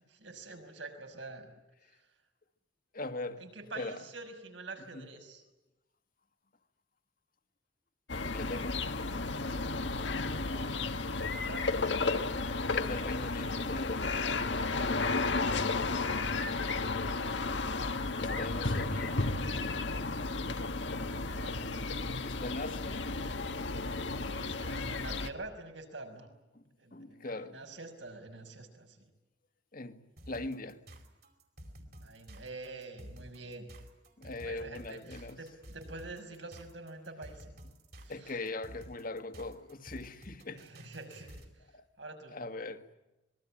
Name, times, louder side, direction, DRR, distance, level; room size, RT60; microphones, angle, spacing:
voice 1, 0.1-1.5 1.9-2.1 3.4-5.4 10.5-10.7 11.3-11.6 15.3-15.6 21.0-21.5 24.3-26.3 26.8-29.1 32.0-33.7 34.2-37.5 38.0-38.4 40.5-42.4, right 3 dB, 75° right, 5.8 m, -47 dB
voice 2, 2.9-3.4 3.8-4.0 4.9-5.0 8.2-8.8 12.7-14.2 18.2-19.2 22.2-23.0 26.5-26.6 26.9-27.6 29.7-30.0 30.3-30.8 34.2-35.4 38.1-40.7 41.7-41.8 42.3-42.9, left 2 dB, 50° left, 1.8 m, -40 dB
sound 1, 8.1-25.3, left 3 dB, 70° left, 1.5 m, -33 dB
sound 2, 30.2-41.5, equal, 55° right, 4.7 m, -51 dB
26.5 x 21.5 x 8.8 m
head